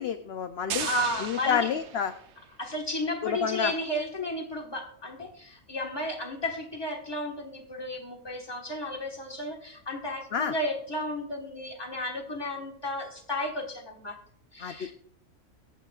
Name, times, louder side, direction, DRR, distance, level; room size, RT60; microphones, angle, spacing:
voice 1, 0.0-0.9 1.2-2.1 3.2-3.7 10.3-10.5 14.6-14.7, left 7 dB, 60° left, 8 dB, 0.7 m, -28 dB
sound 1, 0.7-2.5, right 8 dB, 60° right, 0.9 m, -37 dB
voice 2, 0.8-1.7 2.6-14.2 14.5-14.9, left 1 dB, 20° left, 1 dB, 1.4 m, -33 dB
22.0 x 8.1 x 2.4 m, 0.63 s
omnidirectional pair, 1.5 m